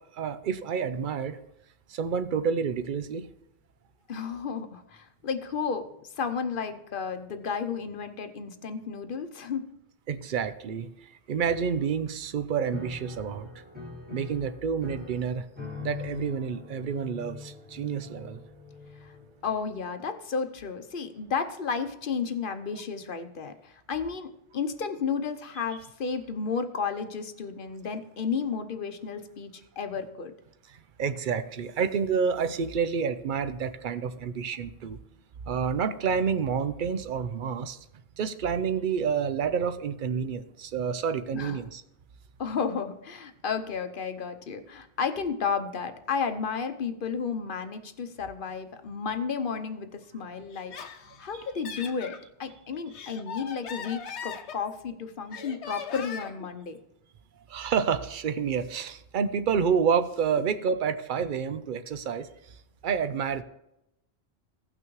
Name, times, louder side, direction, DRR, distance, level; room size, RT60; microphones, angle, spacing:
voice 1, 0.1-1.4 1.9-3.3 10.1-13.5 14.1-15.5 15.8-18.4 22.7-22.8 25.5-25.8 30.7-35.0 35.5-37.8 38.2-41.8 51.3-51.4 57.5-62.3 62.8-63.4, right 6 dB, 55° right, 12 dB, 0.7 m, -29 dB
voice 2, 4.1-5.9 6.2-9.7 19.0-19.1 19.4-30.3 41.3-41.6 42.4-56.8, left 6 dB, 55° left, 8 dB, 0.9 m, -32 dB
Piano, 12.7-19.5, left 4 dB, 10° right, 1.9 m, -42 dB
Laughter, 50.5-52.2 52.7-54.9 55.3-56.5, left 6 dB, 85° left, 1.1 m, -40 dB
16.5 x 6.0 x 3.1 m, 0.86 s
omnidirectional pair, 1.1 m